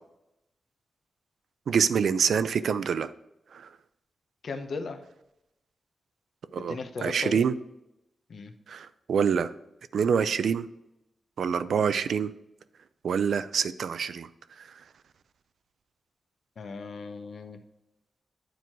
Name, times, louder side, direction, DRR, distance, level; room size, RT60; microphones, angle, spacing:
voice 1, 1.7-3.1 3.5-3.7 6.5-7.5 8.7-9.5 9.9-10.7 11.4-12.3 13.0-14.3 14.6-14.7, right 7 dB, 80° right, 14 dB, 0.4 m, -26 dB
voice 2, 4.4-5.0 6.5-7.4 8.3-8.5 16.6-17.6, left 4 dB, 65° left, 7 dB, 0.8 m, -37 dB
9.2 x 4.6 x 4.5 m, 0.87 s
wide cardioid pair, 120°, 0 cm